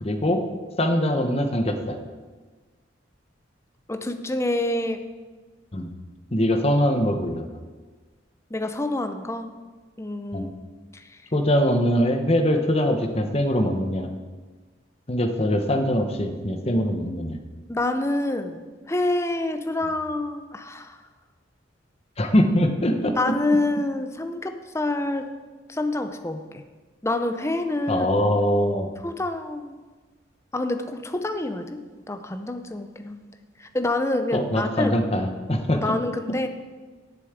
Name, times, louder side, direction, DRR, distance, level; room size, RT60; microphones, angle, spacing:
voice 1, 0.0-0.4 0.8-2.0 5.7-5.9 6.3-7.5 10.3-10.5 11.3-14.1 15.1-17.4 22.2-23.3 27.9-28.9 34.3-35.9, equal, 30° left, 6 dB, 1.0 m, -22 dB
voice 2, 3.9-5.0 8.5-9.5 10.0-10.5 10.9-11.2 17.7-21.0 23.2-25.3 25.7-26.6 27.0-28.1 29.0-29.8 30.5-33.3 33.6-35.0 35.7-36.5, left 2 dB, 15° left, 8 dB, 0.6 m, -27 dB
8.3 x 7.1 x 8.2 m, 1.4 s
head